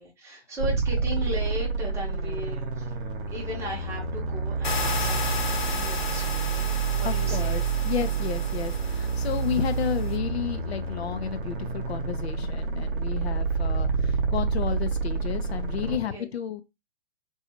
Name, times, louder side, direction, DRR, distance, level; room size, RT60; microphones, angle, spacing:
voice 1, 0.0-3.0 3.3-7.6 15.9-16.3, left 1 dB, 10° right, 0.7 m, -37 dB
sound 1, 0.6-16.0, right 5 dB, 55° right, 0.8 m, -28 dB
sound 2, 4.6-10.2, left 5 dB, 50° left, 1.0 m, -34 dB
voice 2, 7.0-16.6, left 9 dB, 75° left, 0.5 m, -32 dB
2.6 x 2.3 x 2.8 m
figure-of-eight pair, 120°, 32 cm